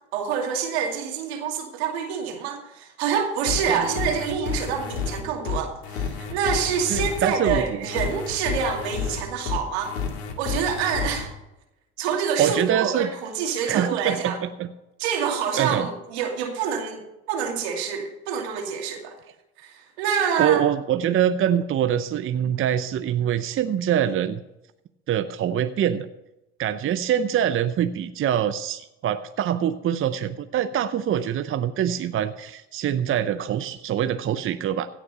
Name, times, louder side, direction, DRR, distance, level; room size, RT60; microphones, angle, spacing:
voice 1, 0.1-10.0 10.4-11.3 12.0-14.4 15.0-19.1 19.6-20.6, right 7 dB, 85° right, 3 dB, 2.4 m, -27 dB
sound 1, 3.5-11.2, left 6 dB, 85° left, 2.1 m, -30 dB
voice 2, 3.7-4.1 6.9-7.9 12.4-13.1 13.7-14.7 15.5-15.9 20.4-24.4 25.1-26.1 26.6-34.9, right 10 dB, 40° right, 11 dB, 0.7 m, -24 dB
16.5 x 6.0 x 6.8 m, 0.92 s
hypercardioid pair, 70°, 31 cm